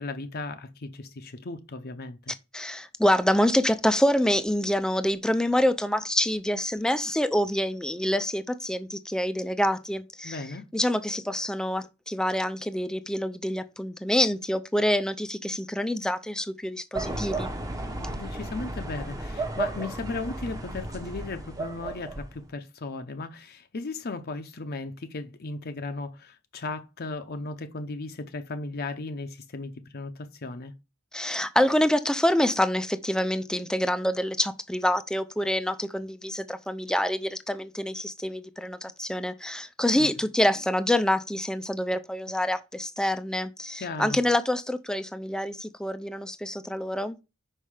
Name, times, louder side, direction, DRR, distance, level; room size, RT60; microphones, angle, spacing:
voice 1, 0.0-2.3 10.2-10.7 18.0-30.7 39.8-40.1 43.8-44.2, left 3 dB, 50° left, 0.7 m, -36 dB
voice 2, 2.5-10.4 10.7-17.5 31.1-47.2, left 1 dB, 5° left, 0.5 m, -26 dB
sound 1, 16.9-22.5, right 2 dB, 15° right, 1.0 m, -34 dB
5.5 x 5.5 x 4.9 m
head